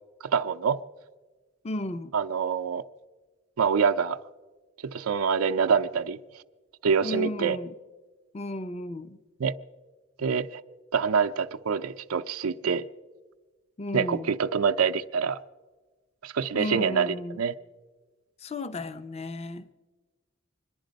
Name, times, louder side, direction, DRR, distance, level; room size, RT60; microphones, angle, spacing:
voice 1, 0.2-0.8 2.1-2.8 3.6-4.2 4.8-6.2 6.8-7.6 9.4-9.5 10.2-10.6 10.9-12.9 13.9-15.4 16.2-17.5, right 6 dB, 85° right, 9 dB, 0.5 m, -26 dB
voice 2, 1.6-2.1 7.0-7.7 8.3-9.2 13.8-14.3 16.5-17.4 18.4-19.7, left 1 dB, 30° left, 12 dB, 0.5 m, -34 dB
25.5 x 10.5 x 5.1 m, 1.3 s
head